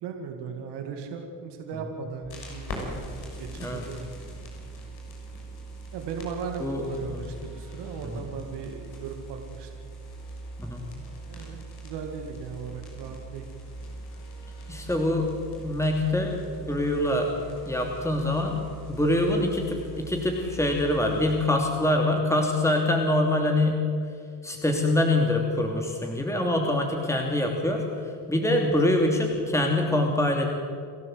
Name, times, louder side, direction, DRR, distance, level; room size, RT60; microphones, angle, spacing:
voice 1, 0.0-3.1 3.4-4.2 5.9-9.7 11.3-13.4, right 5 dB, 80° right, 4 dB, 2.3 m, -37 dB
sound 1, 2.2-21.5, right 2 dB, 65° left, 6.3 m, -41 dB
voice 2, 6.6-7.2 8.0-8.3 10.6-10.9 14.7-15.3 15.6-17.3 17.7-18.6 18.9-23.8 24.4-30.5, left 1 dB, 5° left, 1 dB, 3.0 m, -25 dB
29.0 x 12.5 x 8.0 m, 2.3 s
supercardioid pair, 60°, 40 cm